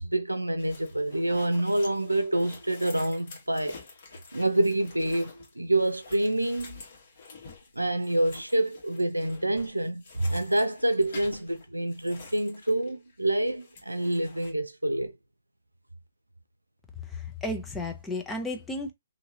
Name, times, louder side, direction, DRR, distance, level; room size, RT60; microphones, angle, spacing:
voice 1, 0.0-3.8 4.3-6.8 7.8-15.1, right 1 dB, 90° right, 0.5 m, -27 dB
sound 1, 0.6-13.2 13.4-14.5, left 4 dB, 50° left, 1.4 m, -48 dB
voice 2, 17.1-18.9, left 2 dB, 10° left, 0.7 m, -33 dB
2.9 x 2.8 x 2.8 m
figure-of-eight pair, 125°, 0 cm